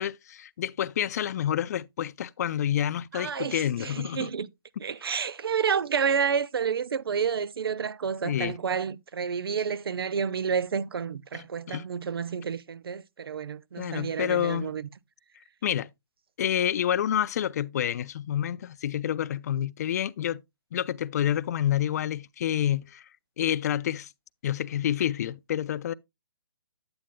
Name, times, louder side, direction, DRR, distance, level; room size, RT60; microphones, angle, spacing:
voice 1, 0.0-4.3 8.2-8.6 11.3-11.9 13.8-14.7 15.6-15.9 16.4-20.4 20.7-23.1 23.4-24.1 24.4-25.9, left 10 dB, 45° left, 0.4 m, -28 dB
voice 2, 3.1-4.5 4.8-14.9, right 6 dB, 70° right, 0.6 m, -30 dB
9.0 x 8.7 x 2.2 m
figure-of-eight pair, 140°, 13 cm